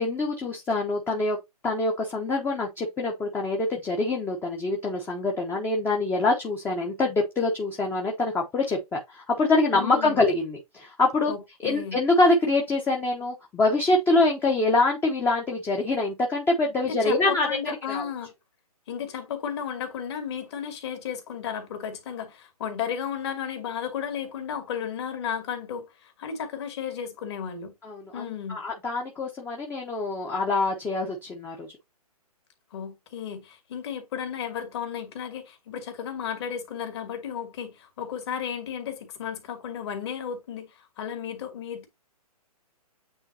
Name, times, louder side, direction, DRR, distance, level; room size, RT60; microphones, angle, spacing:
voice 1, 0.0-1.4 1.6-11.3 11.6-17.5 17.9-18.1 27.8-31.7, left 2 dB, 10° left, 1.0 m, -25 dB
voice 2, 9.7-10.2 11.3-12.0 16.9-18.3 18.9-27.7 28.1-28.6 32.7-41.9, left 7 dB, 45° left, 2.4 m, -34 dB
8.8 x 3.8 x 2.8 m
figure-of-eight pair, 135°, 20 cm